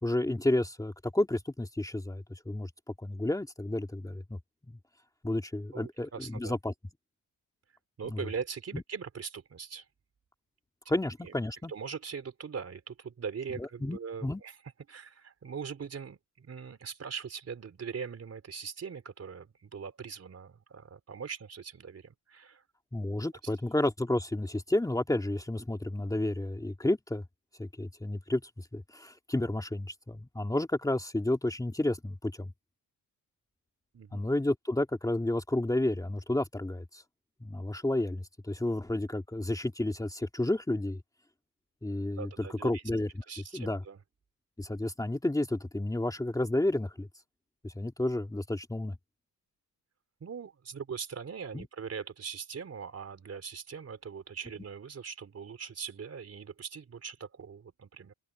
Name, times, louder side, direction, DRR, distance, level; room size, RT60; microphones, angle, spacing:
voice 1, 0.0-2.7 3.0-4.4 4.7-4.8 5.2-6.7 8.1-8.2 8.7-8.8 10.9-11.7 13.6-14.4 22.9-27.2 27.6-28.4 28.7-32.5 34.1-37.0 37.4-41.0 41.8-43.1 43.5-43.8 44.6-47.1 47.6-48.9 51.5-51.7, left 1 dB, 10° left, 2.5 m, -31 dB
voice 2, 5.7-6.6 8.0-9.9 11.2-11.3 11.7-14.6 14.9-22.6 33.9-34.2 42.2-42.8 43.3-44.0 50.2-58.1, right 6 dB, 40° right, 3.9 m, -41 dB
open air
cardioid pair, 100°, 37 cm